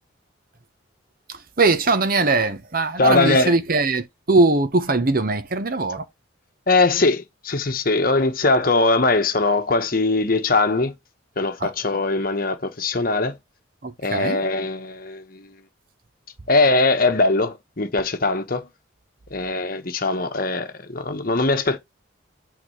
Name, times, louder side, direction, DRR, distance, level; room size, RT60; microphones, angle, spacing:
voice 1, 1.3-6.0 11.6-11.7 13.8-14.4, right 3 dB, 45° right, 0.9 m, -21 dB
voice 2, 3.0-3.6 6.7-10.9 11.4-13.4 14.0-15.5 16.5-18.6 19.3-21.8, left 3 dB, 45° left, 1.1 m, -21 dB
8.8 x 4.0 x 3.2 m
head